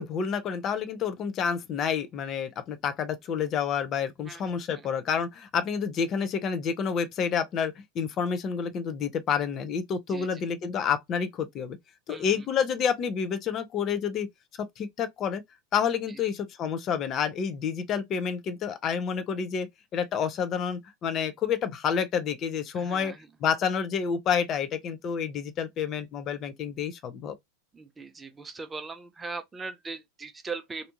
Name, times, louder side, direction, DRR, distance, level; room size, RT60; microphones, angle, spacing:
voice 1, 0.0-11.8 12.1-14.3 14.6-15.4 15.7-19.7 19.9-23.1 23.4-27.4, left 7 dB, 30° left, 0.6 m, -29 dB
voice 2, 10.1-10.4 12.1-12.5 16.1-16.2 22.7-23.3 27.7-30.9, right 4 dB, 15° right, 0.5 m, -40 dB
3.3 x 2.6 x 2.6 m
figure-of-eight pair, 90°, 0 cm